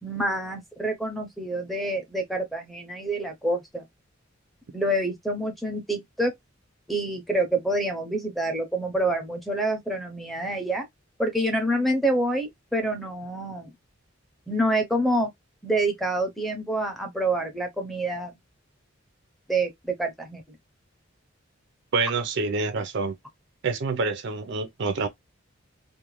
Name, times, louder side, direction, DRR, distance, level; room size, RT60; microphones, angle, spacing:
voice 1, 0.0-3.8 4.7-6.3 6.9-10.8 11.2-13.7 14.5-15.3 15.6-18.3 19.5-20.6, right 1 dB, ahead, 0.5 m, -27 dB
voice 2, 21.9-23.1 23.6-25.1, right 4 dB, 60° right, 0.5 m, -27 dB
2.5 x 2.1 x 3.0 m
head